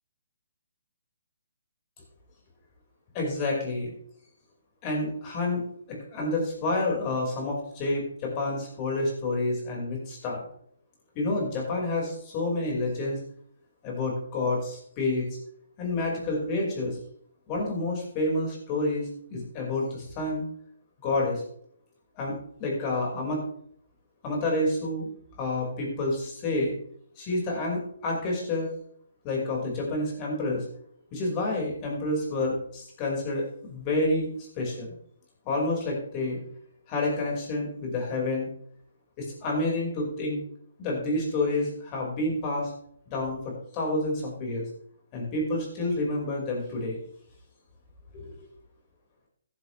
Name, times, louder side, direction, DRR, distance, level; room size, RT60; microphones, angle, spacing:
voice 1, 3.1-3.9 4.8-5.6 5.9-10.4 11.2-13.2 13.8-15.3 15.8-17.0 17.5-20.4 21.0-21.4 22.2-23.4 24.2-25.1 25.4-26.7 27.2-28.7 29.2-30.6 31.1-34.3 34.6-34.9 35.5-36.4 36.9-38.5 39.2-40.4 40.8-42.7 43.1-44.6 45.1-47.0 48.1-48.5, left 2 dB, 25° left, -1 dB, 5.4 m, -29 dB
14.5 x 11.5 x 3.4 m, 0.65 s
hypercardioid pair, 155°, 0 cm